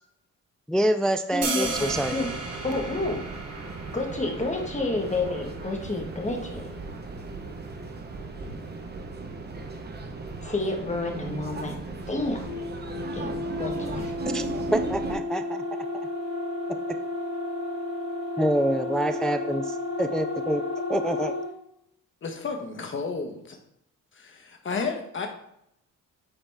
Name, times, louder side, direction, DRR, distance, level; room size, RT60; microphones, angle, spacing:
voice 1, 0.7-2.1 14.3-14.5 14.7-15.6 18.4-20.6 20.9-21.3, right 1 dB, ahead, 9 dB, 0.3 m, -26 dB
voice 2, 1.3-2.3 2.6-3.2 3.9-6.7 10.4-11.7 12.1-12.5 13.1-14.1, left 2 dB, 25° left, 2 dB, 1.5 m, -30 dB
sound 1, 1.4-7.5, right 3 dB, 55° right, 1.7 m, -36 dB
sound 2, 1.6-15.2, right 3 dB, 35° right, 1.0 m, -37 dB
sound 3, 12.5-21.5, left 2 dB, 80° left, 2.7 m, -32 dB
voice 3, 22.2-23.4 24.1-25.3, left 4 dB, 40° left, 4 dB, 1.3 m, -32 dB
8.9 x 4.0 x 3.6 m, 0.76 s
cardioid pair, 90°, 30 cm